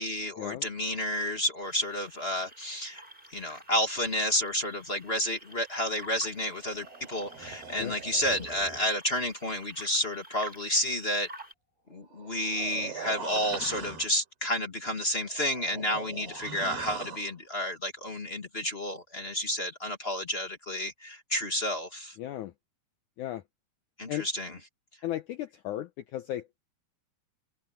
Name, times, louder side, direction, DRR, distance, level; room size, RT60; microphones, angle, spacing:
voice 1, 0.0-3.0 3.3-11.3 11.9-22.2 24.0-24.6, left 1 dB, 30° left, 1.0 m, -31 dB
sound 1, 1.6-11.5, right 1 dB, 10° right, 5.8 m, -50 dB
sound 2, 6.4-8.9 12.0-14.2 15.2-17.3, right 5 dB, 90° right, 6.9 m, -42 dB
voice 2, 22.2-22.5 23.2-23.4 24.1-24.3 25.0-26.6, left 13 dB, 80° left, 1.8 m, -35 dB
omnidirectional pair, 4.4 m